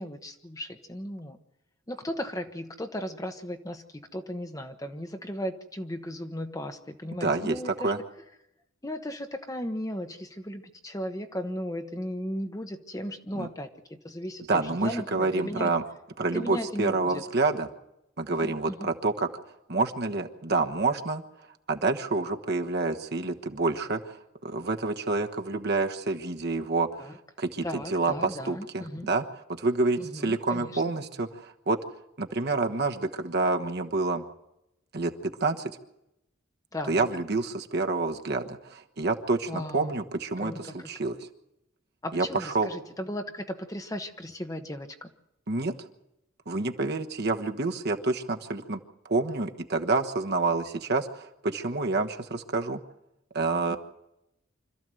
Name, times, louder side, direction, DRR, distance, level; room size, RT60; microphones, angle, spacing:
voice 1, 0.0-1.4 1.9-7.9 8.8-15.7 16.3-17.2 18.4-18.9 27.0-27.2 27.6-29.1 30.0-31.0 36.7-37.1 39.5-40.0 40.4-40.9 42.0-45.1 53.7-53.8, equal, 15° left, 7 dB, 1.1 m, -36 dB
voice 2, 7.2-7.6 7.8-8.0 13.3-13.5 14.5-15.8 16.2-17.7 18.2-19.3 19.7-21.2 21.7-29.2 29.6-31.8 32.2-34.2 34.9-35.7 36.9-40.5 40.8-41.1 42.1-42.7 45.5-45.7 46.5-48.8 49.1-52.8 53.3-53.8, right 3 dB, 55° right, 5 dB, 1.3 m, -28 dB
25.5 x 14.0 x 7.8 m, 0.88 s
head